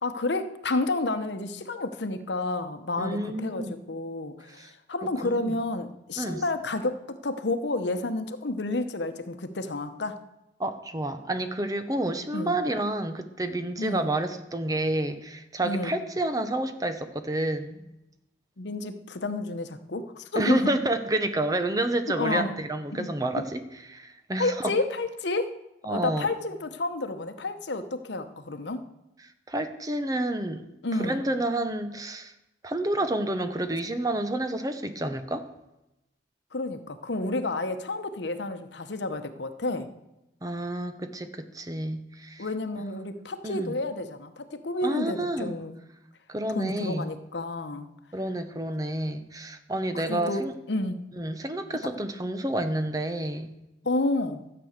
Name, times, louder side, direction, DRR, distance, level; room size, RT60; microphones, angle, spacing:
voice 1, 0.0-7.0 7.2-10.2 12.3-12.5 13.8-14.1 15.6-16.0 18.6-20.7 22.2-22.5 22.9-23.1 24.4-25.6 25.9-28.8 30.8-31.2 36.5-39.9 42.4-45.8 46.5-47.9 49.9-51.0 53.8-54.4, left 2 dB, 80° left, 10 dB, 1.0 m, -30 dB
voice 2, 3.0-3.8 4.6-4.7 5.2-5.6 6.2-6.4 10.6-17.9 20.3-23.6 23.9-24.7 25.8-26.3 29.5-30.6 31.0-32.3 32.6-35.5 40.4-42.5 43.4-43.8 44.8-45.5 46.3-47.1 48.1-50.5 51.2-53.6, right 1 dB, 20° right, 9 dB, 0.8 m, -29 dB
12.5 x 8.0 x 6.6 m, 0.91 s
head